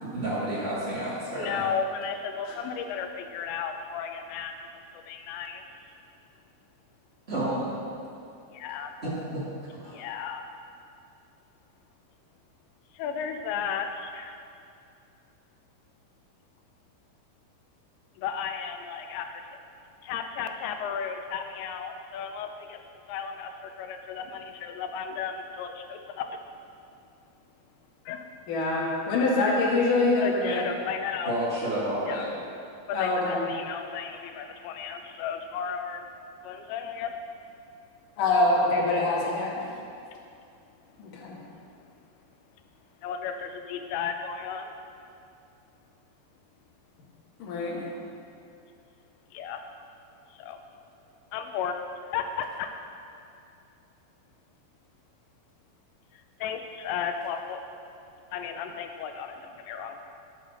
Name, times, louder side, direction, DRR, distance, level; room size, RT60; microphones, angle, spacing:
voice 1, 0.0-1.7 7.3-7.7 9.0-10.0 31.2-32.4, right 1 dB, 55° right, -8 dB, 0.6 m, -31 dB
voice 2, 1.3-5.6 8.5-8.9 9.9-10.4 12.9-14.4 18.2-19.6 20.0-22.8 23.1-26.4 28.1-28.3 30.2-31.4 32.1-32.2 32.9-36.1 36.4-37.2 39.1-39.5 43.0-44.7 49.3-49.6 50.3-50.6 51.3-51.8 52.1-52.7 56.1-57.7 58.3-60.0, left 7 dB, 80° left, 6 dB, 2.9 m, -34 dB
voice 3, 28.5-30.6 32.9-33.4 38.2-39.5 41.0-41.4 47.4-47.9, left 2 dB, 55° left, -4 dB, 2.9 m, -25 dB
11.5 x 7.1 x 6.2 m, 2.5 s
omnidirectional pair, 5.3 m